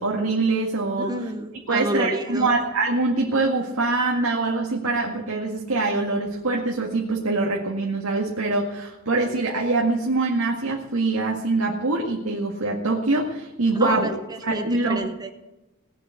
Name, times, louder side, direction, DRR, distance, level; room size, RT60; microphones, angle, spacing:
voice 1, 0.0-1.1 1.7-14.1 14.4-15.1, right 3 dB, 85° right, -1 dB, 2.0 m, -24 dB
voice 2, 1.0-2.6 13.7-15.3, right 1 dB, 20° right, 7 dB, 1.0 m, -29 dB
19.0 x 8.3 x 8.2 m, 1.0 s
head